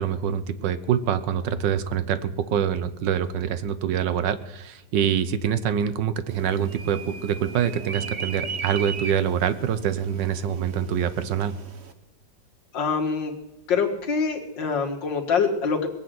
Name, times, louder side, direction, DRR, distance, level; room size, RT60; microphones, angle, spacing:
voice 1, 0.0-11.6, right 8 dB, 75° right, 13 dB, 1.6 m, -25 dB
sound 1, 6.3-11.9, right 5 dB, 40° right, 1.2 m, -37 dB
voice 2, 12.7-13.4 13.7-15.9, left 5 dB, 75° left, 2 dB, 2.6 m, -25 dB
20.0 x 8.3 x 7.7 m, 0.99 s
omnidirectional pair, 2.0 m